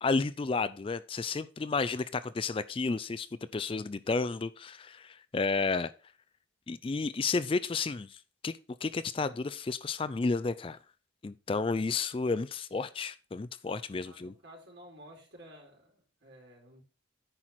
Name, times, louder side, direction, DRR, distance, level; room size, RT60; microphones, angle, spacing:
voice 1, 0.0-3.3 3.5-5.9 6.7-8.5 8.8-10.8 11.2-14.3, left 4 dB, 25° left, 0.3 m, -32 dB
voice 2, 13.6-16.8, equal, 65° right, 4.3 m, -53 dB
9.8 x 4.6 x 5.8 m
head